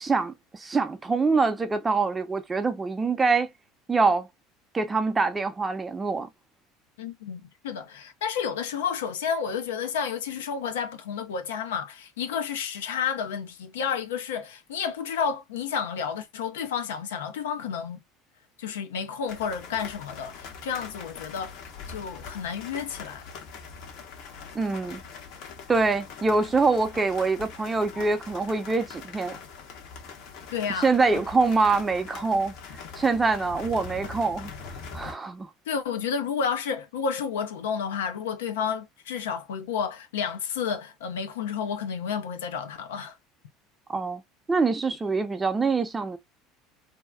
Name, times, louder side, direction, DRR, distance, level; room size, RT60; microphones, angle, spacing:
voice 1, 0.0-3.5 3.9-4.3 4.7-6.3 24.5-25.0 25.7-29.4 30.8-32.5 32.9-34.5 34.9-35.5 43.9-44.2 44.5-46.2, right 4 dB, 20° right, 0.6 m, -24 dB
voice 2, 7.0-18.0 18.6-21.5 21.9-23.2 30.5-31.2 35.7-43.1, left 7 dB, 85° left, 0.7 m, -31 dB
sound 1, 19.3-35.1, left 5 dB, 65° left, 1.0 m, -42 dB
2.8 x 2.3 x 2.2 m
hypercardioid pair, 80°, 0 cm